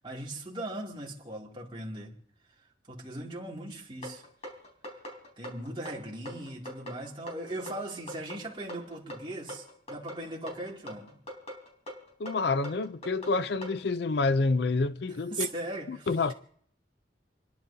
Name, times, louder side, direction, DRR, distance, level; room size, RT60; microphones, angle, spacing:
voice 1, 0.0-2.1 2.9-4.2 5.4-11.2 15.3-16.1, right 1 dB, 25° right, 2.5 m, -39 dB
sound 1, 4.0-13.8, equal, 35° left, 3.8 m, -42 dB
voice 2, 12.2-15.5 15.9-16.3, left 3 dB, 60° left, 0.4 m, -28 dB
29.5 x 11.0 x 2.8 m
head